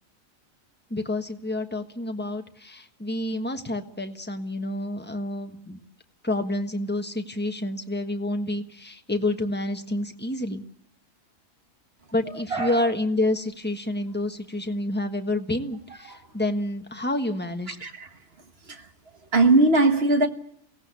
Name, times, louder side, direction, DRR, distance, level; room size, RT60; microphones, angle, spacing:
voice 1, 0.9-5.8 6.2-10.6 12.1-17.8, left 1 dB, 10° left, 1.3 m, -28 dB
voice 2, 12.5-12.8 16.1-16.2 17.8-18.1 18.7-18.8 19.3-20.3, right 2 dB, 50° right, 1.7 m, -20 dB
23.0 x 17.5 x 8.2 m
omnidirectional pair, 1.4 m